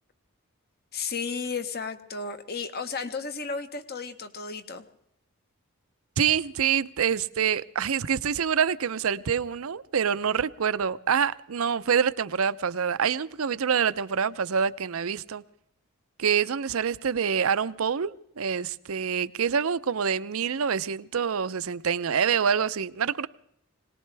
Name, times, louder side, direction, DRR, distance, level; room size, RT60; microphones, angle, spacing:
voice 1, 0.9-4.8, left 5 dB, 45° left, 1.1 m, -33 dB
voice 2, 6.2-15.4 16.2-23.3, right 7 dB, 80° right, 0.6 m, -26 dB
21.5 x 19.0 x 3.4 m
head